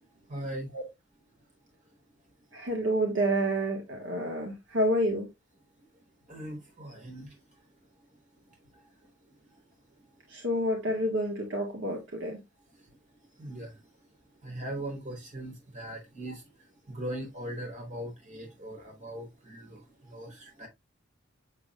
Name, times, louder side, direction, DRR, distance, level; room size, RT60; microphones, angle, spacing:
voice 1, 0.3-0.7 6.3-7.4 8.7-8.9 13.4-13.8 14.4-16.4 16.9-20.7, right 1 dB, 40° right, 4.0 m, -40 dB
voice 2, 2.5-5.3 10.3-12.4, right 1 dB, 70° right, 1.8 m, -29 dB
7.4 x 7.1 x 2.4 m
head